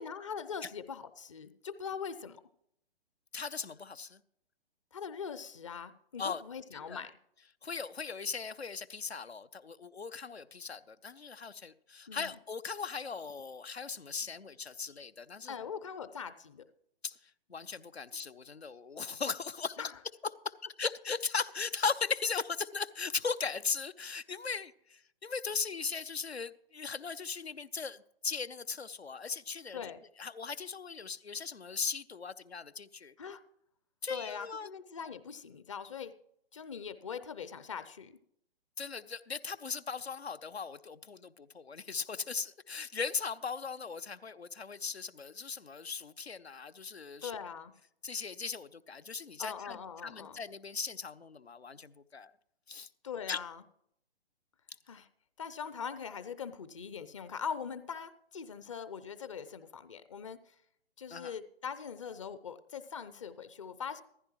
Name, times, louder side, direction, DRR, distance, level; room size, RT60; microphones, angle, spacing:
voice 1, 0.0-2.4 4.9-7.1 12.1-12.3 15.5-16.6 19.8-19.9 29.7-30.0 33.2-33.4 34.1-36.1 36.5-38.2 47.2-47.7 49.4-50.4 53.0-53.6 54.9-55.1 55.4-60.5 61.0-64.0, left 6 dB, 30° left, 0.6 m, -42 dB
voice 2, 3.3-4.2 6.2-6.4 6.7-7.0 7.6-15.5 17.0-19.9 20.4-29.8 30.2-33.1 34.0-34.7 38.8-47.3 48.0-52.3 52.7-52.9 53.3-53.4 61.1-61.3, left 5 dB, 80° left, 0.8 m, -38 dB
15.5 x 14.5 x 3.1 m
figure-of-eight pair, 130°, 31 cm